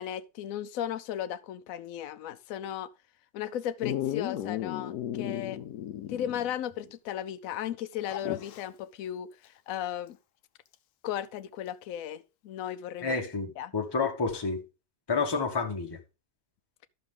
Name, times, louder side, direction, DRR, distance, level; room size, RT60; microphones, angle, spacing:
voice 1, 0.0-2.9 3.3-5.6 6.1-10.2 11.0-13.2 13.6-13.7, left 10 dB, 70° left, 1.0 m, -35 dB
Dog, 3.8-6.6 6.9-7.0 8.1-8.7 10.7-10.8, left 11 dB, 90° left, 1.2 m, -34 dB
voice 2, 13.0-14.6 15.1-16.0, left 4 dB, 15° left, 1.1 m, -29 dB
12.0 x 6.5 x 3.7 m
omnidirectional pair, 1.6 m